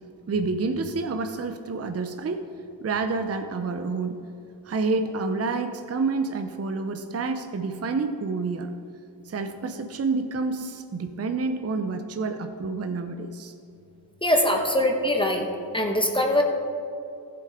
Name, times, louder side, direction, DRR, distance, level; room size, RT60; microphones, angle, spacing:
voice 1, 0.3-2.4 2.8-4.2 4.6-8.7 9.3-13.5, right 4 dB, 35° right, 7 dB, 0.7 m, -28 dB
voice 2, 14.2-15.5 15.7-16.4, left 1 dB, 10° left, 2 dB, 1.4 m, -22 dB
15.0 x 7.8 x 3.7 m, 2.6 s
cardioid pair, 65°, 45 cm